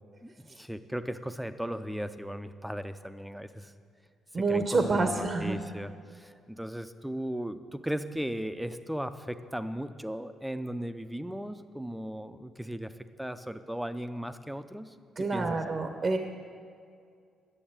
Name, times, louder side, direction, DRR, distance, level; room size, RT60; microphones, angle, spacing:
voice 1, 0.2-3.7 4.5-12.9 13.2-14.9 15.3-15.6, equal, 5° right, 10 dB, 0.5 m, -37 dB
voice 2, 4.3-5.6 15.2-16.2, right 3 dB, 40° right, 6 dB, 0.8 m, -27 dB
10.0 x 6.9 x 8.8 m, 2.2 s
cardioid pair, 90°, 0 cm